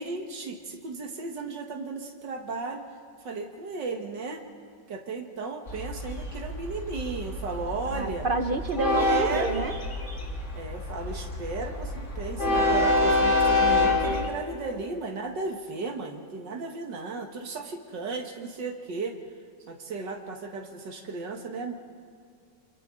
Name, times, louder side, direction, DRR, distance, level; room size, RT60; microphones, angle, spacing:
voice 1, 0.0-2.8 3.2-4.4 4.9-8.3 8.9-9.6 10.5-19.2 19.7-21.7, right 3 dB, 75° right, 3 dB, 2.2 m, -35 dB
Train, 5.7-14.3, left 2 dB, 40° left, 2.4 m, -27 dB
voice 2, 7.9-9.7, right 3 dB, 55° right, 8 dB, 0.6 m, -29 dB
28.5 x 27.0 x 3.8 m, 2.2 s
omnidirectional pair, 1.9 m